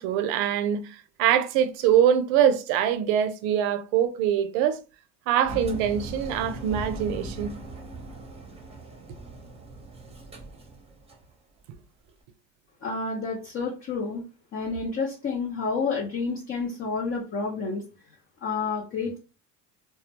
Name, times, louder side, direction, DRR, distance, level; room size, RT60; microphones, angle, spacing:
voice 1, 0.0-4.8 5.3-7.5, right 9 dB, 85° right, 0.5 m, -23 dB
Engine, 5.4-11.3, right 2 dB, 15° right, 0.7 m, -39 dB
voice 2, 12.8-14.2 14.5-17.8 18.4-19.2, left 4 dB, 40° left, 0.7 m, -29 dB
2.2 x 2.1 x 2.8 m
supercardioid pair, 90°, 34 cm